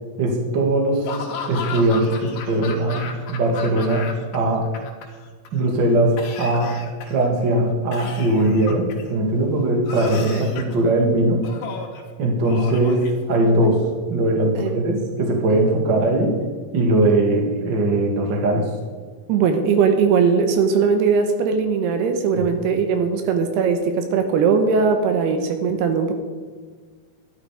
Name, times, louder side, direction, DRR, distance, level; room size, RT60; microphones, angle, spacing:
voice 1, 0.2-1.1 1.5-4.7 5.5-6.7 7.0-11.4 12.2-13.8 14.1-16.3 16.7-18.7, right 1 dB, 40° right, 1 dB, 1.8 m, -20 dB
Laughter / Cough, 1.0-4.4 4.6-5.5 6.2-7.3 7.9-9.1 9.9-10.8 11.4-12.0 12.5-13.7, left 5 dB, 65° left, 3.1 m, -34 dB
voice 2, 19.3-26.1, right 5 dB, 75° right, 6 dB, 2.9 m, -19 dB
12.0 x 11.5 x 4.9 m, 1.5 s
omnidirectional pair, 4.8 m